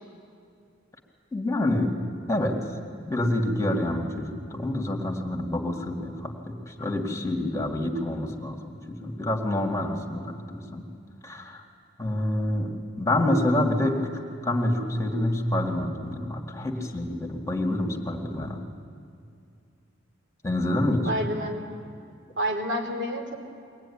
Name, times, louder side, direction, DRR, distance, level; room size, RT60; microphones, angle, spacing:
voice 1, 1.3-2.0 2.3-2.6 3.0-10.9 11.2-11.6 12.0-14.0 14.4-18.6 20.4-21.1, left 1 dB, 15° left, 1 dB, 2.1 m, -27 dB
voice 2, 21.1-21.6 22.4-23.4, equal, 65° right, 1 dB, 3.5 m, -28 dB
23.0 x 19.0 x 10.0 m, 2.3 s
head